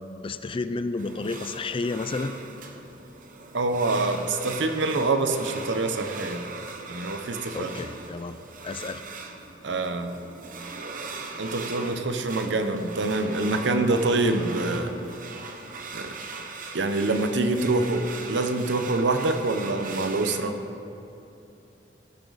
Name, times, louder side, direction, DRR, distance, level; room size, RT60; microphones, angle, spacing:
voice 1, 0.2-2.3 7.5-8.4 8.6-9.0, left 3 dB, 30° left, 11 dB, 0.4 m, -31 dB
sound 1, 1.0-20.4, right 3 dB, 50° right, 0.9 m, -39 dB
voice 2, 3.5-6.4 6.9-7.8 9.6-10.2 11.4-14.9 15.9-16.1 16.7-20.5, right 2 dB, 75° right, 7 dB, 0.8 m, -25 dB
17.0 x 9.1 x 4.0 m, 2.8 s
head